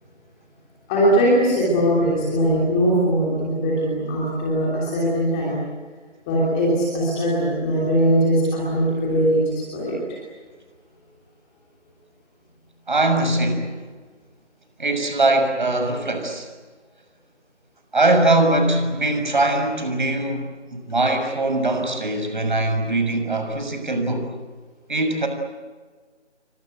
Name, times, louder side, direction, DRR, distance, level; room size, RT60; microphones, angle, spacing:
voice 1, 0.9-5.6 6.3-10.2, equal, 5° left, -5 dB, 3.1 m, -20 dB
voice 2, 12.9-13.7 14.8-16.5 17.9-24.3 24.9-25.3, right 2 dB, 40° right, 6 dB, 6.5 m, -21 dB
29.0 x 24.5 x 8.1 m, 1.4 s
figure-of-eight pair, 165°, 36 cm